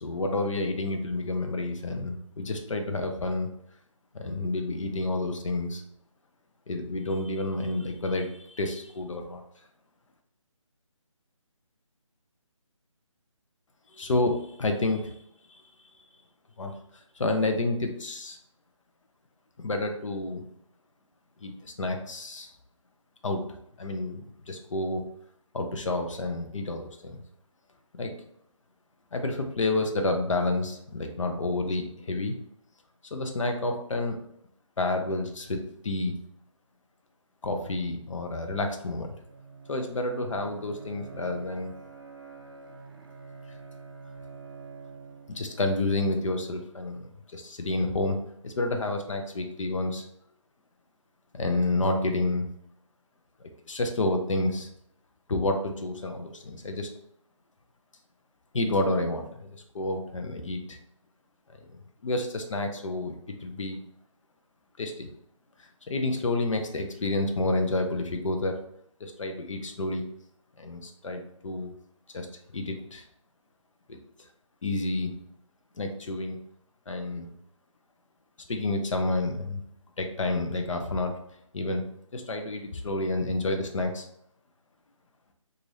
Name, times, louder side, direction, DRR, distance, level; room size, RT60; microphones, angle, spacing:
voice 1, 0.0-3.5 4.1-5.8 6.7-9.4 13.9-15.1 16.6-16.7 17.2-18.4 19.6-20.4 21.4-22.5 23.2-23.5 23.8-25.0 25.5-27.2 28.0-28.1 29.1-32.3 33.1-34.2 34.8-36.1 37.4-39.1 39.7-41.7 45.3-47.1 47.3-48.2 48.4-50.0 51.3-52.5 53.7-54.7 55.3-56.9 58.5-59.5 59.7-60.8 62.0-63.1 63.4-63.8 64.8-65.1 65.9-68.5 69.0-70.0 70.6-71.7 72.1-72.3 72.5-73.0 74.6-75.1 75.8-76.4 76.9-77.3 78.5-79.6 80.0-81.2 81.5-81.8 82.1-84.1, left 2 dB, 65° left, 4 dB, 0.6 m, -29 dB
Bowed string instrument, 38.8-46.6, right 5 dB, 45° right, 0.5 m, -47 dB
3.3 x 2.5 x 2.6 m, 0.72 s
figure-of-eight pair, 170°, 17 cm